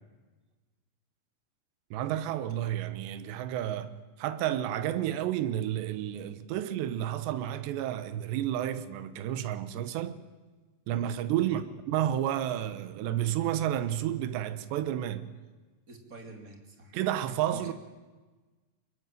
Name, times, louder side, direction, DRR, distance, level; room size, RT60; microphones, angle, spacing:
voice 1, 1.9-10.2 10.9-15.3 16.9-17.7, right 11 dB, 90° right, 3.3 m, -31 dB
voice 2, 11.4-11.8 15.9-17.0 17.5-17.7, right 2 dB, 20° right, 2.9 m, -48 dB
24.5 x 21.5 x 9.2 m
omnidirectional pair, 4.9 m